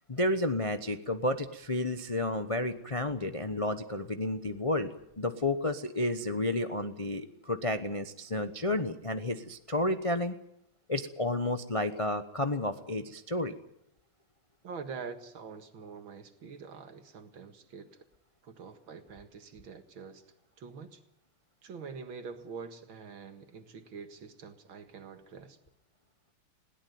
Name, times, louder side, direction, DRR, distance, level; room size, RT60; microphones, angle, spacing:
voice 1, 0.1-4.9 5.2-10.3 10.9-13.5, left 1 dB, 30° left, 8 dB, 0.6 m, -31 dB
voice 2, 14.6-18.0 18.4-20.2 20.6-21.0 21.6-25.6, right 5 dB, 70° right, 8 dB, 2.5 m, -45 dB
21.0 x 17.0 x 9.4 m, 0.75 s
omnidirectional pair, 2.3 m